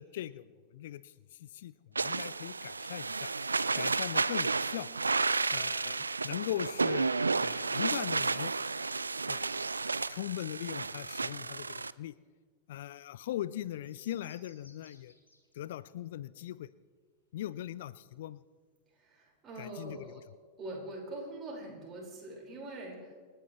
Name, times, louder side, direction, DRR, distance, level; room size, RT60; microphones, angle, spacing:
voice 1, 0.0-3.3 3.8-4.9 5.5-7.1 7.4-8.5 9.3-9.5 10.1-12.1 12.7-15.1 15.5-16.7 17.3-18.4 19.6-20.2, left 12 dB, 55° left, 17 dB, 0.4 m, -40 dB
sound 1, 1.9-11.9, right 4 dB, 80° right, 0.3 m, -32 dB
sound 2, 13.7-15.5 15.8-15.9, left 2 dB, 80° left, 2.3 m, -61 dB
voice 2, 19.0-20.2 20.6-23.1, right 2 dB, 25° right, -3 dB, 5.5 m, -43 dB
28.0 x 10.0 x 3.3 m, 1.5 s
figure-of-eight pair, 90°, 0 cm